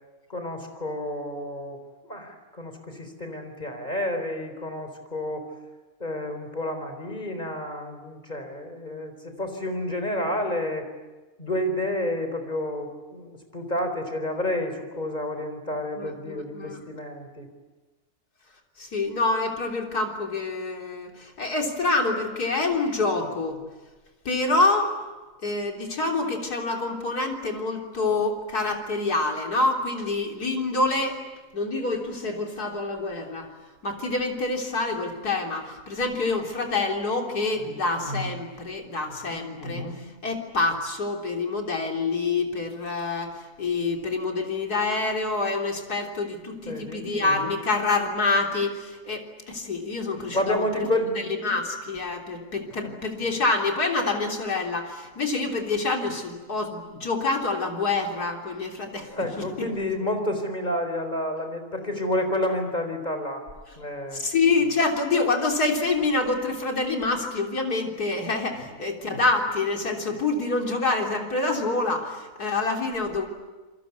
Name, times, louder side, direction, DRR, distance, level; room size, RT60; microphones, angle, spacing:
voice 1, 0.3-5.5 6.0-10.9 11.4-17.5 37.5-37.7 39.1-39.4 46.6-47.0 50.3-51.2 52.8-53.0 59.1-63.5 63.8-64.2 68.6-68.7, left 1 dB, 30° left, 6 dB, 4.3 m, -30 dB
voice 2, 16.0-16.8 18.8-23.6 24.3-24.9 25.4-31.2 31.5-33.5 33.8-50.6 51.4-59.1 59.4-59.7 64.1-73.3, left 3 dB, 90° left, 2 dB, 4.0 m, -26 dB
28.0 x 23.5 x 8.3 m, 1.2 s
omnidirectional pair, 1.6 m